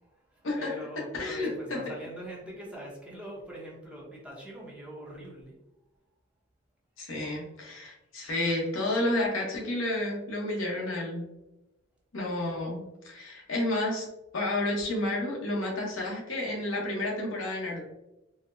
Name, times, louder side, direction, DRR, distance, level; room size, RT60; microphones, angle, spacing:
voice 1, 0.0-5.5, right 1 dB, 5° right, -4 dB, 0.7 m, -43 dB
voice 2, 1.1-1.9 7.0-11.3 12.1-14.1 14.3-17.9, left 1 dB, 75° left, -2 dB, 0.9 m, -31 dB
4.0 x 2.1 x 2.6 m, 0.94 s
head